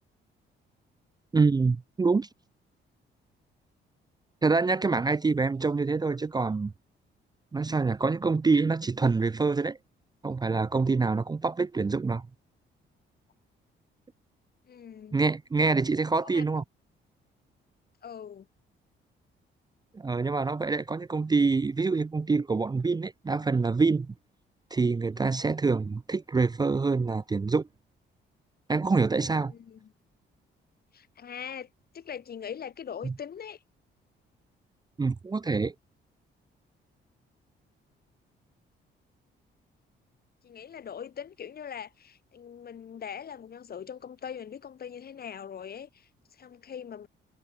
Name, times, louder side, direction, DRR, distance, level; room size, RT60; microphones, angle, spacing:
voice 1, 1.3-2.3 4.4-6.7 7.5-9.8 10.2-12.2 15.1-16.6 19.9-24.1 24.7-27.6 28.7-29.5 33.0-33.1 35.0-35.7, right 4 dB, 20° right, 0.6 m, -26 dB
voice 2, 14.7-15.2 16.2-16.5 18.0-18.5 29.5-29.9 30.9-31.7 31.9-33.6 40.4-47.1, left 8 dB, 50° left, 2.2 m, -41 dB
cardioid pair, 90°, 20 cm